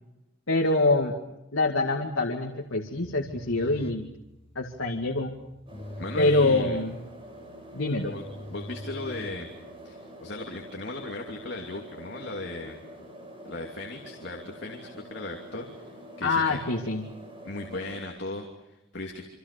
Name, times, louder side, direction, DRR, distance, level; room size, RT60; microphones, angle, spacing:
voice 1, 0.5-1.1 1.5-4.1 4.6-5.3 6.2-7.0 7.7-8.1 16.2-17.0, left 2 dB, 70° left, 1 dB, 2.3 m, -25 dB
sound 1, 3.0-9.9, left 1 dB, 30° left, 1.3 m, -43 dB
sound 2, 5.7-18.0, equal, 25° right, 6.5 m, -46 dB
voice 2, 6.0-6.8 8.0-9.5 9.8-12.8 13.4-16.6 17.4-19.2, left 2 dB, 55° left, 1 dB, 2.9 m, -37 dB
28.0 x 25.5 x 6.9 m, 0.91 s
head